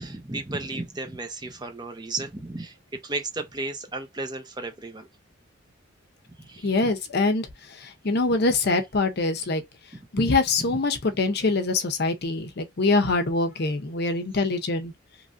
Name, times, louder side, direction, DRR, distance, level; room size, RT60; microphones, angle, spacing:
voice 1, 0.0-5.1 6.4-6.9 9.9-10.7, right 2 dB, 20° right, 0.6 m, -34 dB
voice 2, 6.6-7.5 7.8-9.6 10.1-14.9, left 3 dB, 55° left, 0.6 m, -24 dB
3.0 x 2.5 x 2.5 m
head